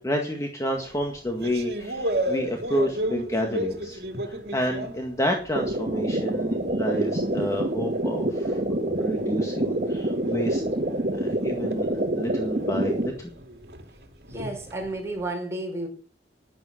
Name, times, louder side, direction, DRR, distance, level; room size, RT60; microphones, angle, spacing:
voice 1, 0.0-8.6 9.0-10.6 11.1-13.3, equal, 15° left, 1.8 m, -30 dB
sound 1, 0.7-5.9 6.3-15.2, right 1 dB, 65° right, 2.4 m, -35 dB
sound 2, 5.6-13.1, right 1 dB, 45° right, 2.1 m, -27 dB
voice 2, 14.3-15.9, right 2 dB, 15° right, 5.7 m, -32 dB
12.0 x 10.5 x 6.5 m
head